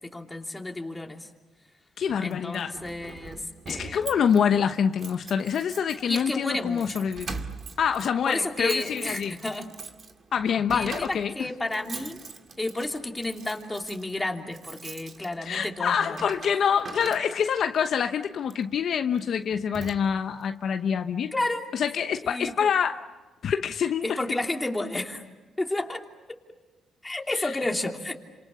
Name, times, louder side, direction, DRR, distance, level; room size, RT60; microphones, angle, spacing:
voice 1, 0.1-1.3 2.2-4.2 6.1-7.1 8.2-9.7 10.7-12.2 12.6-16.2 21.3-21.7 22.2-22.7 24.0-25.2 25.6-26.0 27.0-28.2, left 2 dB, 15° left, 3.1 m, -31 dB
voice 2, 2.0-2.7 3.7-7.5 7.8-9.3 10.3-11.3 15.4-21.3 21.7-23.0 23.4-24.1 27.3-27.5, left 7 dB, 60° left, 1.0 m, -26 dB
Keys jangling, 2.3-17.7 18.4-18.7 19.1-19.3 19.5-20.4, right 4 dB, 45° right, 2.2 m, -43 dB
29.5 x 27.0 x 6.9 m
cardioid pair, 90°, 0 cm